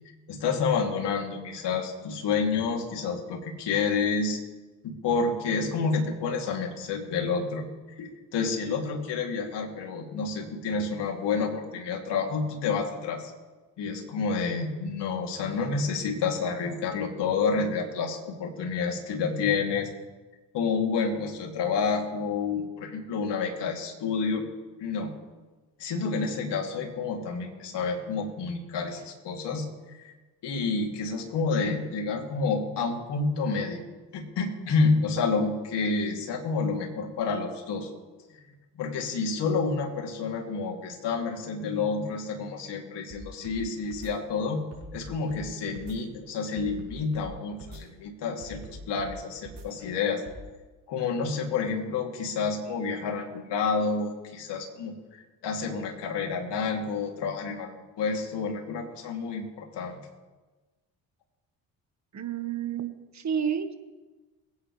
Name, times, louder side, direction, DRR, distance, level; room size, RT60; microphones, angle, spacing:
voice 1, 0.3-4.4 4.8-7.7 8.0-13.3 13.8-19.9 20.5-24.4 24.8-25.1 25.8-30.1 30.4-33.8 34.1-37.9 38.3-38.4 38.7-44.6 44.9-50.2 50.9-57.7 58.0-60.0, left 4 dB, 65° left, 1 dB, 2.9 m, -29 dB
sound 1, 43.1-43.6 43.9-44.1 44.7-45.4 45.7-46.0 46.6-47.3 47.6-47.8 48.4-49.1 49.4-49.6 50.2-50.4, right 3 dB, 65° right, 4.4 m, -44 dB
voice 2, 62.1-62.9 63.1-63.8, right 8 dB, 40° right, 9 dB, 1.5 m, -30 dB
22.0 x 9.7 x 3.3 m, 1.2 s
hypercardioid pair, 60°, 45 cm